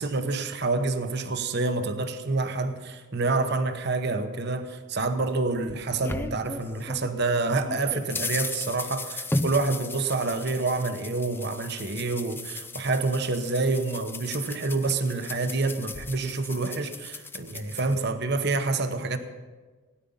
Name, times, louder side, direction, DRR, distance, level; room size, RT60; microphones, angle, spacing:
voice 1, 0.0-19.2, right 3 dB, 50° right, 8 dB, 0.9 m, -27 dB
sound 1, 5.3-7.1 7.5-18.0, left 2 dB, 10° left, 0.4 m, -36 dB
17.0 x 10.0 x 5.5 m, 1.3 s
head